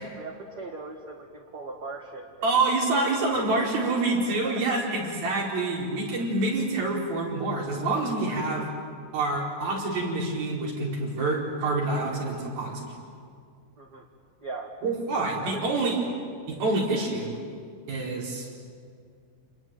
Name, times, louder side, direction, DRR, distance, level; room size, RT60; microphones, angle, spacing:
voice 1, 0.0-2.5 2.9-3.6 4.3-4.9 13.8-14.1 14.4-14.8 15.1-15.9, right 3 dB, 40° right, 0 dB, 1.7 m, -39 dB
voice 2, 2.4-8.7 9.1-12.9 14.8-16.0 16.5-17.4 17.9-18.5, right 2 dB, 85° right, -2 dB, 6.6 m, -27 dB
29.5 x 21.0 x 9.2 m, 2.2 s
omnidirectional pair, 4.1 m